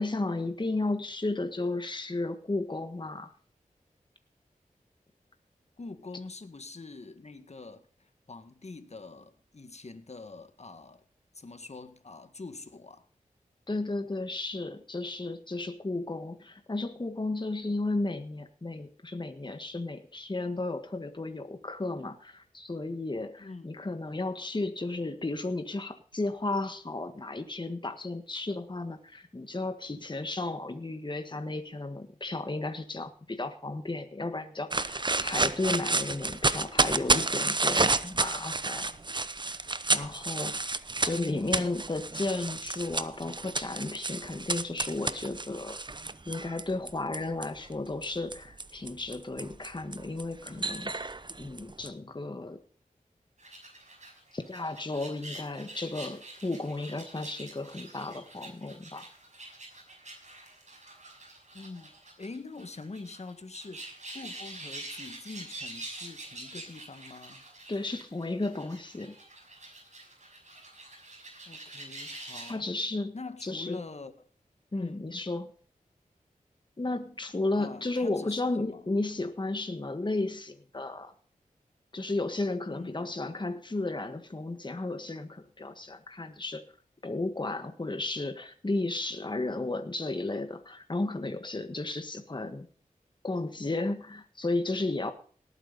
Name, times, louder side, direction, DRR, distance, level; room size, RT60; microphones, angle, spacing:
voice 1, 0.0-3.3 13.7-38.9 39.9-40.7 41.0-45.8 46.3-50.9 51.4-52.6 54.3-59.1 67.7-69.1 72.5-73.2 73.4-73.8 74.7-75.5 76.8-81.1 81.9-86.6 87.0-92.7 93.2-95.1, left 2 dB, 35° left, 8 dB, 1.6 m, -33 dB
voice 2, 5.8-11.0 11.3-13.0 23.4-23.8 41.1-41.8 61.5-61.9 62.2-63.8 64.1-67.4 71.5-72.7 73.1-74.1 74.7-75.2 77.6-78.9 82.7-83.2, left 3 dB, 50° left, 9 dB, 1.8 m, -44 dB
sound 1, 34.7-47.5 48.0-51.9, right 3 dB, 35° right, 0.8 m, -30 dB
sound 2, 53.4-72.6, right 2 dB, 55° right, 5.9 m, -46 dB
18.5 x 9.1 x 4.1 m, 0.43 s
cardioid pair, 55°, 14 cm